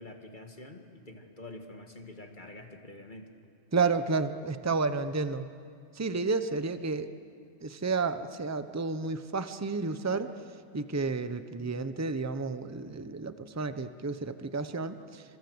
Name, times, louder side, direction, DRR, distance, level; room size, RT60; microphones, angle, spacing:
voice 1, 0.0-3.3, left 2 dB, 40° left, 4 dB, 2.0 m, -46 dB
voice 2, 3.7-5.5 5.9-7.1 7.6-10.3 10.7-15.2, right 4 dB, 15° right, 10 dB, 0.8 m, -31 dB
27.0 x 26.5 x 8.0 m, 2.3 s
omnidirectional pair, 1.2 m